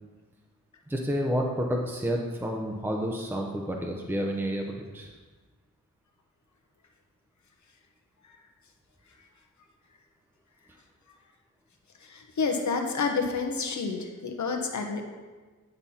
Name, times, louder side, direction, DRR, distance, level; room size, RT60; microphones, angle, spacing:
voice 1, 0.9-5.1, equal, 5° right, 0 dB, 0.7 m, -30 dB
voice 2, 12.1-15.1, left 4 dB, 65° left, 3 dB, 1.1 m, -29 dB
9.3 x 5.4 x 4.3 m, 1.3 s
wide cardioid pair, 100°, 31 cm